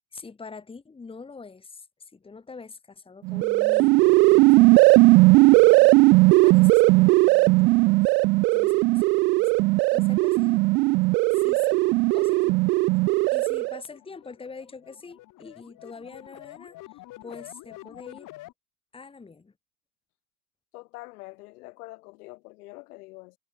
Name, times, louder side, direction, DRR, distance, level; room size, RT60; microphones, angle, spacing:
voice 1, 0.1-1.9 2.1-8.2 8.5-9.1 9.4-10.6 11.3-11.8 12.1-12.6 13.3-18.3 18.9-19.5, left 4 dB, 10° left, 4.7 m, -44 dB
sound 1, 3.2-13.8, right 23 dB, 25° right, 0.4 m, -18 dB
sound 2, 11.6-18.5, left 17 dB, 40° left, 6.7 m, -48 dB
voice 2, 20.7-23.4, left 22 dB, 60° left, 6.5 m, -44 dB
supercardioid pair, 145°, 50 cm